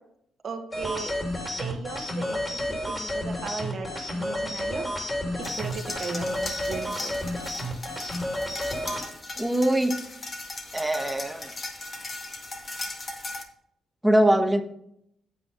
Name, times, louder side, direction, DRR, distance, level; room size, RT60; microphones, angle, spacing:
voice 1, 0.4-1.1 1.6-4.9 5.6-7.1, right 5 dB, 50° right, 3 dB, 1.4 m, -36 dB
sound 1, 0.7-9.0, left 1 dB, 15° left, 3.4 m, -31 dB
sound 2, 5.4-13.4, left 2 dB, 35° left, 1.9 m, -38 dB
voice 2, 9.4-10.0 10.7-11.5 14.0-14.6, right 1 dB, 5° right, 6 dB, 1.3 m, -22 dB
9.1 x 8.4 x 3.7 m, 0.71 s
cardioid pair, 90°, 0 cm